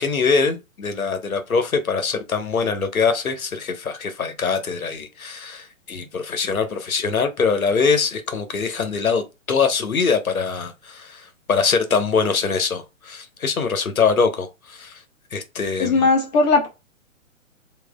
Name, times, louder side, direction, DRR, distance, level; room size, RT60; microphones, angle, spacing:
voice 1, 0.0-15.0 15.3-16.1, left 5 dB, 85° left, 1.3 m, -23 dB
voice 2, 15.8-16.7, left 3 dB, 30° left, 1.2 m, -18 dB
7.3 x 3.1 x 2.3 m
hypercardioid pair, 140°, 41 cm